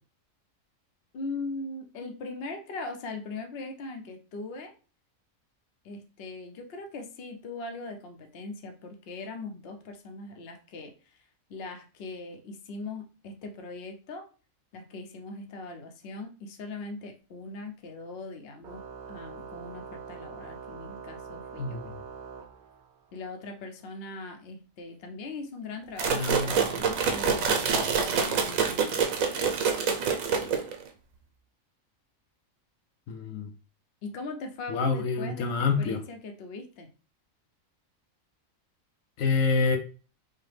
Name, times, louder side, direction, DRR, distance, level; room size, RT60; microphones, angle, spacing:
voice 1, 1.1-4.7 5.8-11.2 11.5-14.3 14.7-18.8 19.1-21.8 23.1-29.9 34.0-36.9, left 3 dB, 55° left, 4 dB, 0.9 m, -40 dB
Organ, 18.6-23.1, right 6 dB, 65° right, 0.5 m, -44 dB
sound 1, 26.0-30.9, right 6 dB, 85° right, 1.1 m, -26 dB
voice 2, 26.1-26.6 33.1-33.5 34.7-36.0 39.2-39.8, left 4 dB, 80° left, 5 dB, 1.0 m, -27 dB
5.6 x 2.2 x 3.2 m, 0.36 s
omnidirectional pair, 1.4 m